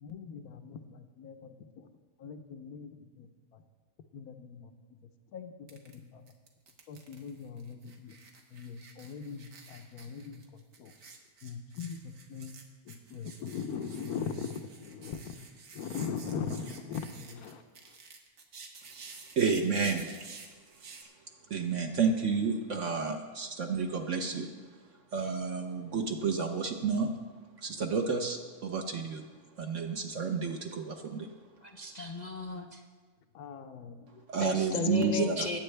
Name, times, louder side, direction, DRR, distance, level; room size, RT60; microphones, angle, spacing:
voice 1, 0.0-1.9 2.2-3.6 4.1-4.7 5.0-6.2 6.9-8.2 8.5-10.9 11.4-12.6 12.9-15.3 15.7-17.6 33.3-34.3 34.7-35.2, left 6 dB, 80° left, 8 dB, 1.3 m, -41 dB
sound 1, 5.7-6.0 6.3-21.0, right 5 dB, 75° right, 1.7 m, -51 dB
voice 2, 19.4-20.5 21.0-21.1 21.5-24.5 25.1-27.1 27.6-29.2 29.6-31.3 34.3-35.5, right 5 dB, 60° right, 3 dB, 1.1 m, -31 dB
voice 3, 31.6-32.8 34.4-35.6, left 3 dB, 60° left, 3 dB, 0.4 m, -35 dB
20.5 x 8.7 x 3.3 m, 1.4 s
omnidirectional pair, 1.6 m